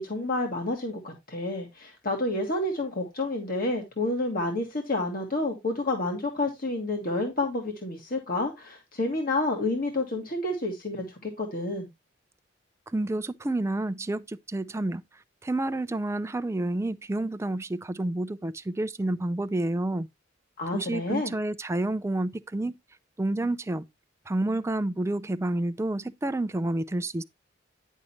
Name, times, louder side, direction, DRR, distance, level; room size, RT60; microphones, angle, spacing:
voice 1, 0.0-11.9 20.6-21.3, left 2 dB, 50° left, 1.7 m, -29 dB
voice 2, 12.9-15.0 15.4-20.1 20.7-22.8 23.2-23.9 24.3-27.2, right 1 dB, 15° right, 0.4 m, -29 dB
10.0 x 6.4 x 2.9 m
head